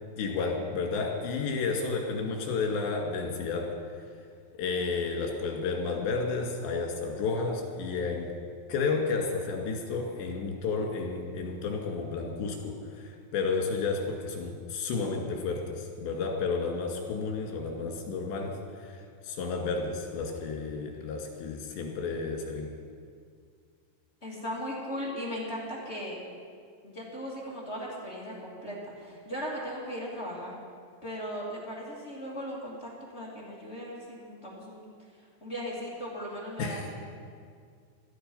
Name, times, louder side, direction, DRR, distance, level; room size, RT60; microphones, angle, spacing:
voice 1, 0.2-3.7 4.6-8.3 8.7-18.5 18.8-22.7 36.6-36.9, left 4 dB, 85° left, 1 dB, 4.3 m, -31 dB
voice 2, 24.2-26.2 26.8-30.6 31.0-34.9 35.4-36.8, equal, 20° left, -5 dB, 2.1 m, -37 dB
17.5 x 12.5 x 5.5 m, 2.1 s
omnidirectional pair, 4.9 m